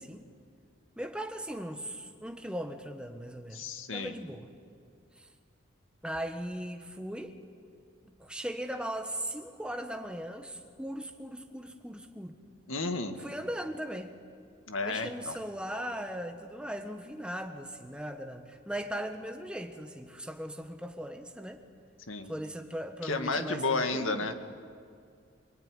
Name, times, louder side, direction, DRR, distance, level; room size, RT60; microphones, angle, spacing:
voice 1, 1.0-3.6 3.9-4.5 5.2-5.3 6.0-7.4 8.0-12.4 13.2-14.1 14.8-21.6 22.3-24.3, equal, 5° right, 6 dB, 1.5 m, -38 dB
voice 2, 3.5-4.1 12.7-13.2 14.7-15.4 22.1-22.3 23.0-24.3, left 3 dB, 75° left, 7 dB, 2.0 m, -32 dB
26.5 x 23.0 x 9.8 m, 2.2 s
head